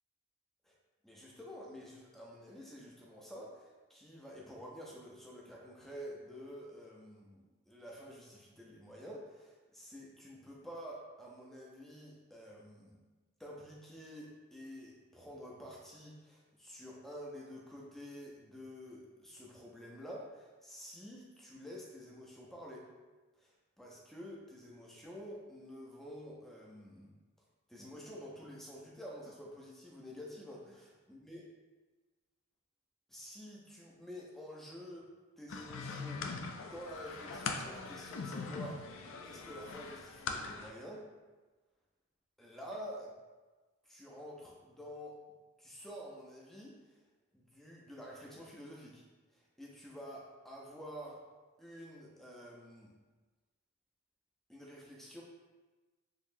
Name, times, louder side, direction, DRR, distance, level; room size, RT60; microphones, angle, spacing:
voice 1, 1.0-13.0 13.4-22.9 23.4-27.1 27.7-31.5 33.1-35.1 35.4-41.1 42.4-43.1 43.9-45.2 45.6-46.8 47.3-49.0 49.3-51.2 51.6-52.9 54.5-55.2, equal, ahead, -3 dB, 0.5 m, -49 dB
sound 1, 35.5-40.7, left 4 dB, 60° left, 0.3 m, -41 dB
3.9 x 3.0 x 2.6 m, 1.3 s
head